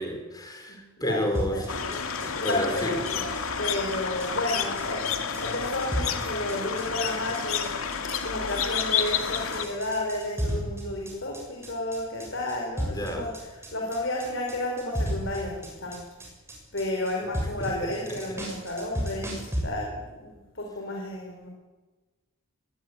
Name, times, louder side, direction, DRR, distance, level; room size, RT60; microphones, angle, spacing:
voice 1, 0.0-3.2 12.9-13.3 18.1-18.2, equal, 20° left, 4 dB, 4.5 m, -32 dB
voice 2, 0.7-1.6 2.4-3.3 3.6-13.3 13.7-16.0 16.7-21.5, left 1 dB, 60° left, 0 dB, 4.7 m, -32 dB
sound 1, 1.3-19.6, equal, 10° right, 7.3 m, -34 dB
sound 2, 1.7-9.7, left 6 dB, 80° left, 2.2 m, -30 dB
21.0 x 20.0 x 9.5 m, 1.2 s
head